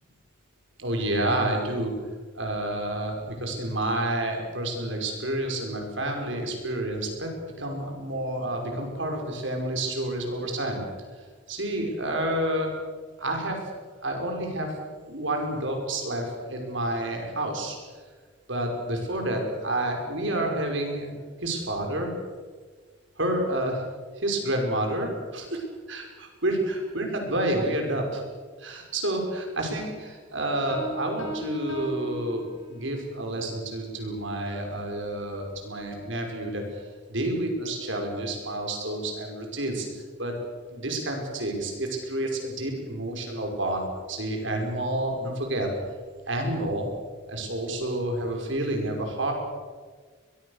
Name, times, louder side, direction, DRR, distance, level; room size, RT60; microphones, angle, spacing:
voice 1, 0.8-1.9 2.3-7.3 7.6-10.8 11.5-12.7 13.2-13.6 14.0-14.7 15.1-17.8 18.5-21.1 21.4-22.1 23.2-23.8 24.2-28.2 28.6-36.8 37.1-39.9 40.2-40.3 40.7-45.7 46.3-46.9 47.3-49.3, right 1 dB, 65° right, 2 dB, 5.6 m, -29 dB
Piano, 30.7-33.1, right 1 dB, 80° left, 6.6 m, -37 dB
22.5 x 22.5 x 6.7 m, 1.5 s
head